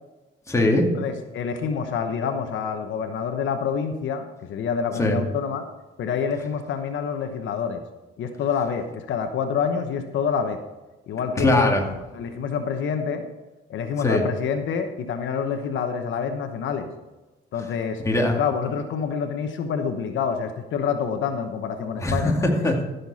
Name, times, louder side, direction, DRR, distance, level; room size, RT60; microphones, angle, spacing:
voice 1, 0.5-0.9 5.0-5.2 11.4-11.9 14.0-14.2 18.0-18.4 22.0-22.8, left 2 dB, 15° left, 0 dB, 2.3 m, -20 dB
voice 2, 1.0-5.6 6.0-7.8 8.2-10.6 11.1-11.7 12.1-13.3 13.7-16.9 17.5-18.0 18.4-22.5, left 6 dB, 75° left, 6 dB, 1.0 m, -27 dB
14.5 x 6.8 x 4.2 m, 1.1 s
cardioid pair, 90°, 20 cm